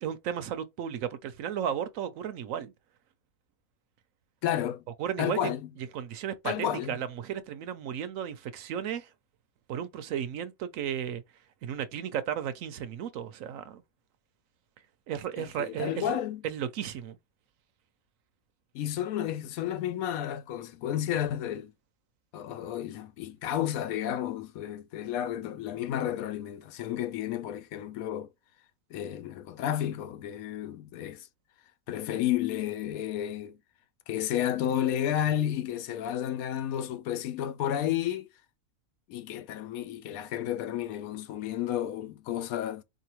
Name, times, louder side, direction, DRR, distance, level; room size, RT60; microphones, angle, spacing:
voice 1, 0.0-2.7 5.0-5.5 5.9-9.1 9.7-11.2 11.6-13.8 15.1-17.2, right 9 dB, 70° right, 0.9 m, -34 dB
voice 2, 4.4-4.8 5.2-5.7 6.4-7.0 15.4-16.4 18.7-21.7 22.3-28.3 28.9-31.3 31.9-33.6 34.1-38.3 39.1-42.8, left 11 dB, 75° left, 1.0 m, -32 dB
4.2 x 2.7 x 2.9 m
omnidirectional pair, 1.6 m